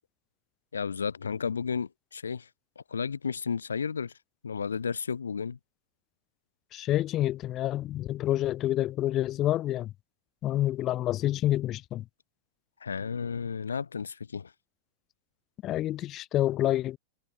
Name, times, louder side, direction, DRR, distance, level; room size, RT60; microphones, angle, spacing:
voice 1, 0.7-2.5 2.8-4.1 4.4-5.6 12.8-14.5, left 6 dB, 70° left, 1.8 m, -33 dB
voice 2, 6.7-9.9 10.4-12.0 15.6-17.0, left 14 dB, 35° left, 3.7 m, -28 dB
figure-of-eight pair, 90°, 0 cm